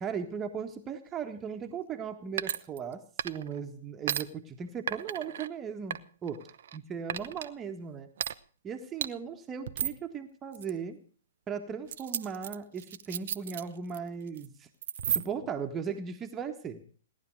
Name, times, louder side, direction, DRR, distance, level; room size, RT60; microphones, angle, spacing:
voice 1, 0.0-6.4 6.7-8.1 8.6-11.0 11.5-14.7 15.1-16.8, right 6 dB, 20° right, 5 dB, 1.5 m, -37 dB
sound 1, 2.4-3.6 4.1-4.2 4.9-5.5 5.9-6.8 7.1-7.5 8.2-8.3 9.0-9.1 9.7-10.0 10.5-10.7 11.9-14.0 14.3-14.5 14.8-15.5, right 9 dB, 60° right, 0.7 m, -34 dB
18.0 x 11.0 x 6.4 m, 0.43 s
figure-of-eight pair, 120°, 0 cm